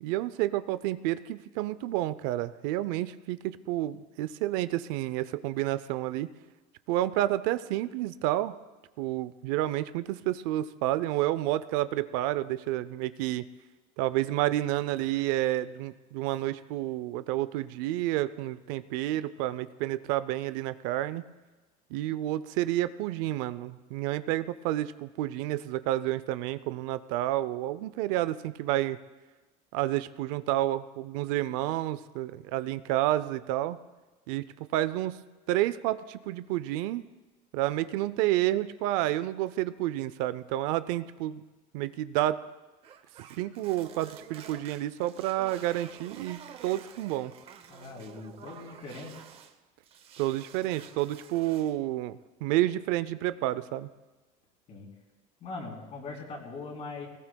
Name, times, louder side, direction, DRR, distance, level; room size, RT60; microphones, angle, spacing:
voice 1, 0.0-6.3 6.9-8.5 9.0-13.4 14.0-21.2 21.9-29.0 29.7-33.8 34.3-34.5 34.7-35.2 35.5-37.0 37.5-41.4 41.7-42.4 43.4-47.3 50.2-53.9, right 15 dB, 70° right, 15 dB, 0.5 m, -30 dB
sound 1, 42.8-49.6 49.8-51.8, right 8 dB, 30° right, 0.8 m, -50 dB
voice 2, 47.7-49.1 54.7-54.9 55.4-57.1, left 3 dB, 40° left, 0 dB, 3.4 m, -41 dB
19.0 x 19.0 x 2.2 m, 1.2 s
cardioid pair, 160°, 18 cm